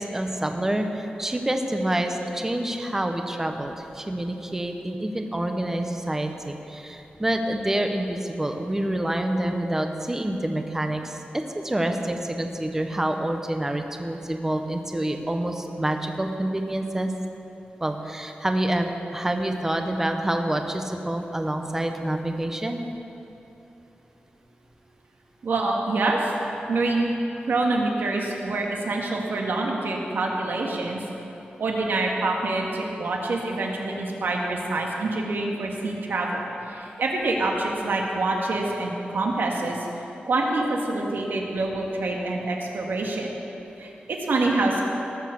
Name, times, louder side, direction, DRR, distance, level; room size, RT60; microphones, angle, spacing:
voice 1, 0.0-17.1 17.8-22.8, right 1 dB, 15° right, 4 dB, 0.9 m, -27 dB
voice 2, 25.4-26.3 26.7-27.1 27.5-31.0 31.6-39.9 40.3-43.3 43.8-44.8, right 2 dB, 75° right, -1 dB, 1.9 m, -26 dB
18.5 x 7.3 x 7.1 m, 2.9 s
wide cardioid pair, 175°, 3 cm